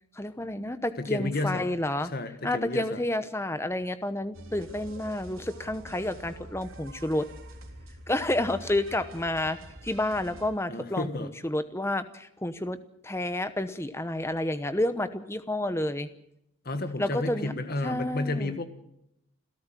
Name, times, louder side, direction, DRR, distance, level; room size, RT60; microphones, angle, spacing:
voice 1, 0.1-2.1 2.4-7.3 8.1-12.8 13.0-16.1 17.0-17.5 17.8-18.5, left 1 dB, 10° left, 12 dB, 0.9 m, -30 dB
voice 2, 1.0-1.7 2.1-3.0 10.7-11.3 16.6-18.6, left 2 dB, 45° left, 9 dB, 1.6 m, -31 dB
sound 1, 4.3-10.5, right 1 dB, 70° right, 3.5 m, -46 dB
27.5 x 13.0 x 7.6 m, 0.78 s
head